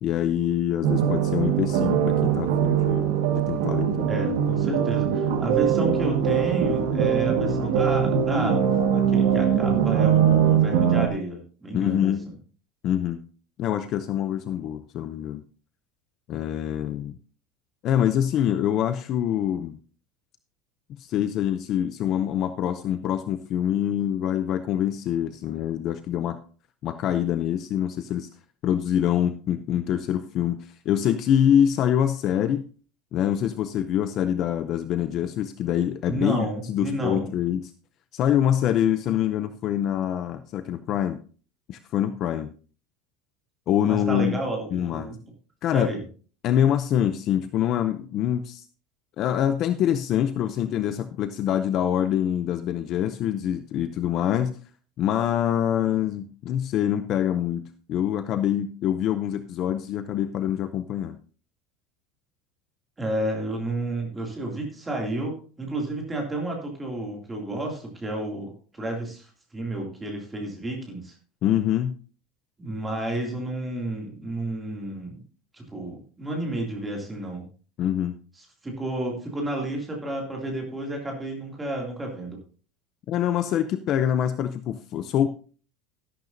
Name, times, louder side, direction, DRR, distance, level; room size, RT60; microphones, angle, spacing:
voice 1, 0.0-4.1 11.7-12.3 12.8-13.2 13.6-15.4 16.3-17.2 17.8-19.8 21.0-26.4 26.8-28.3 28.6-32.6 33.1-37.7 38.1-41.2 41.7-42.5 43.7-44.4 44.7-45.1 45.6-46.0 46.4-48.7 49.2-54.6 55.0-61.2 71.4-71.9 77.8-78.1 83.1-85.3, left 10 dB, 35° left, 10 dB, 0.5 m, -25 dB
sound 1, 0.8-11.1, right 8 dB, 85° right, 1.6 m, -22 dB
voice 2, 4.1-12.1 36.1-37.3 43.9-45.2 45.7-46.0 63.0-71.1 72.6-75.2 75.5-77.5 78.6-82.4, right 1 dB, 10° right, 0 dB, 2.5 m, -31 dB
12.0 x 11.5 x 2.7 m, 0.39 s
cardioid pair, 180°, 0 cm